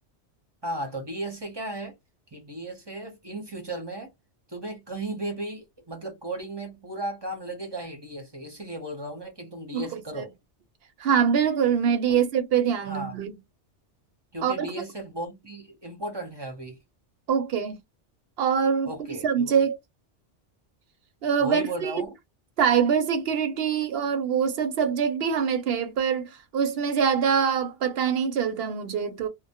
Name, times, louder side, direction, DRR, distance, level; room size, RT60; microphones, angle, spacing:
voice 1, 0.6-1.9 2.3-4.1 4.5-10.3 12.1-12.2 12.8-13.2 14.3-16.8 18.8-19.7 21.4-22.1, right 1 dB, 25° right, 0.6 m, -35 dB
voice 2, 11.0-13.3 14.4-14.7 17.3-17.8 18.4-19.8 21.2-21.9 22.6-29.3, right 7 dB, 65° right, 0.7 m, -24 dB
2.1 x 2.0 x 2.8 m
omnidirectional pair, 1.2 m